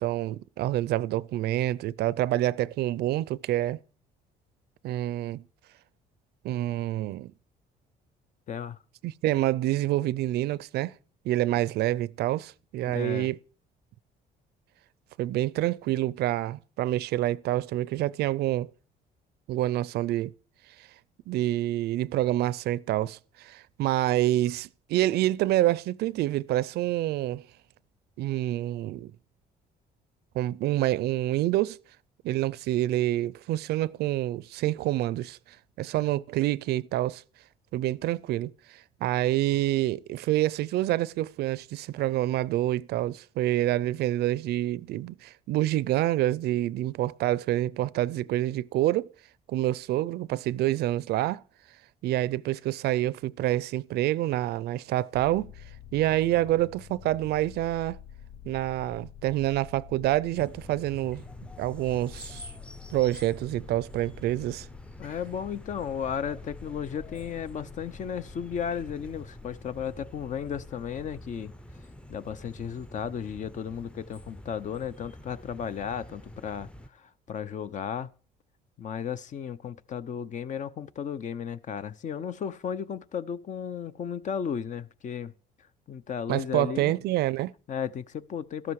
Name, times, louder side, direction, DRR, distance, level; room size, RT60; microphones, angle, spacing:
voice 1, 0.0-3.8 4.8-5.4 6.4-7.3 9.0-10.9 11.2-13.4 15.2-18.7 19.5-20.3 21.3-27.4 28.2-29.1 30.3-31.8 32.2-35.4 35.8-37.2 37.7-49.1 49.5-51.4 52.0-55.5 55.9-58.0 58.4-61.2 61.6-62.5 62.9-64.7 86.3-87.5, right 15 dB, 70° right, 0.5 m, -27 dB
voice 2, 8.5-8.8 12.9-13.3 65.0-71.5 72.1-78.1 78.8-85.3 85.9-86.9 87.7-88.7, left 8 dB, 45° left, 0.8 m, -34 dB
sound 1, 55.1-71.4, left 9 dB, 75° left, 1.0 m, -49 dB
sound 2, 60.3-76.9, equal, 5° left, 0.6 m, -47 dB
13.5 x 12.5 x 4.8 m
cardioid pair, 110°, 17 cm